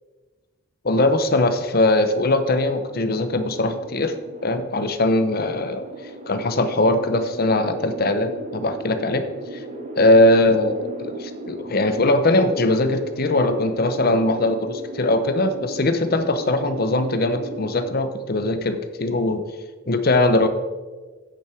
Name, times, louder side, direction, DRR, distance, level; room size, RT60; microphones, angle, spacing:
voice 1, 0.8-4.1 4.4-5.8 6.3-9.2 9.5-9.6 9.9-19.4 19.9-20.5, left 2 dB, 45° left, 9 dB, 0.8 m, -20 dB
sound 1, 2.3-17.9, right 2 dB, 35° right, 1.0 m, -37 dB
9.1 x 8.2 x 4.5 m, 1.3 s
head